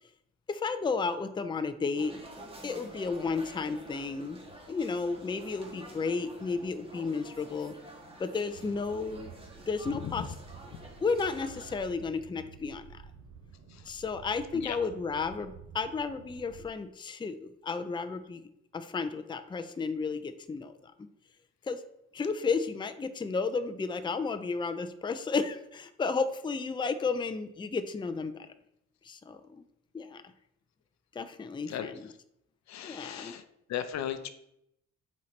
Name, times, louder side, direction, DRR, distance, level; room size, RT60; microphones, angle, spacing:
voice 1, 0.5-2.2 2.6-4.4 4.7-7.7 8.2-9.3 9.7-10.3 11.0-13.0 13.9-18.4 18.7-20.9 21.6-21.8 22.1-28.5 29.0-29.6 29.9-30.3 31.1-32.0 32.8-33.3, left 4 dB, 15° left, 9 dB, 0.5 m, -33 dB
sound 1, 2.0-11.9, right 1 dB, 20° right, 1.5 m, -49 dB
sound 2, 8.5-16.7, right 7 dB, 75° right, 0.8 m, -51 dB
voice 2, 31.7-32.1 32.7-33.4 33.7-34.3, left 9 dB, 65° left, 11 dB, 0.6 m, -37 dB
7.8 x 4.2 x 3.2 m, 0.79 s
cardioid pair, 90°, 30 cm